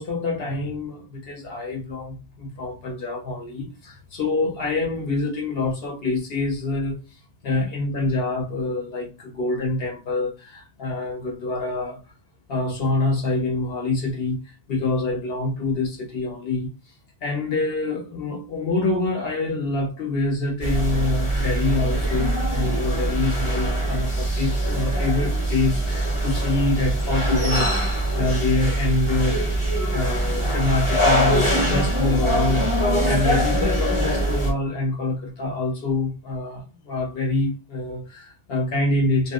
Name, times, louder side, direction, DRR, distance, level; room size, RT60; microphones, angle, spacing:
voice 1, 0.0-7.0 7.4-12.0 12.5-16.7 17.2-27.8 28.1-29.4 29.9-39.3, left 2 dB, 70° left, 1.0 m, -26 dB
sound 1, 20.6-34.5, right 1 dB, 30° left, 1.0 m, -23 dB
2.8 x 2.7 x 2.4 m
omnidirectional pair, 1.0 m